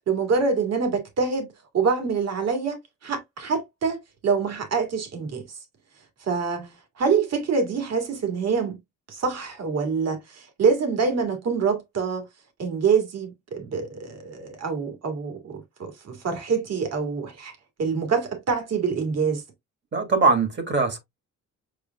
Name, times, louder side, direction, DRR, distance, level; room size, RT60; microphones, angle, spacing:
voice 1, 0.1-1.5 1.7-5.5 6.2-6.7 7.0-8.8 9.1-12.3 12.6-19.4, right 5 dB, 55° right, 2.2 m, -25 dB
voice 2, 19.9-21.0, right 3 dB, 35° right, 1.6 m, -21 dB
4.9 x 4.8 x 2.2 m
cardioid pair, 90°, 30 cm